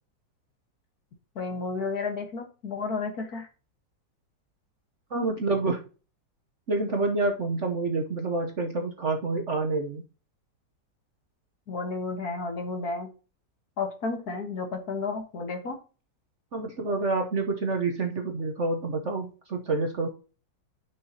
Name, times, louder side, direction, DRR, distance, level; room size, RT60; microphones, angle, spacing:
voice 1, 1.4-3.5 11.7-13.1 13.8-15.8, left 4 dB, 55° left, 4 dB, 1.9 m, -32 dB
voice 2, 5.1-5.8 6.7-10.0 16.5-20.1, right 3 dB, 50° right, 3 dB, 1.0 m, -28 dB
10.0 x 5.5 x 2.8 m, 0.35 s
omnidirectional pair, 2.0 m